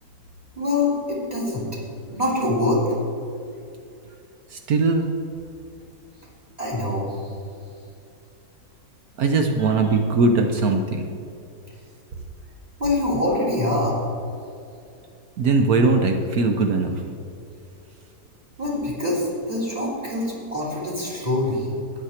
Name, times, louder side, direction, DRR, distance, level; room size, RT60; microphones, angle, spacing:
voice 1, 0.6-1.6 2.0-2.8 6.6-7.1 12.8-14.0 18.6-21.6, left 2 dB, 25° right, -4 dB, 3.3 m, -24 dB
voice 2, 4.5-5.0 9.2-11.0 15.4-17.0, right 3 dB, 70° right, 4 dB, 1.3 m, -20 dB
13.0 x 9.9 x 4.4 m, 2.6 s
omnidirectional pair, 1.6 m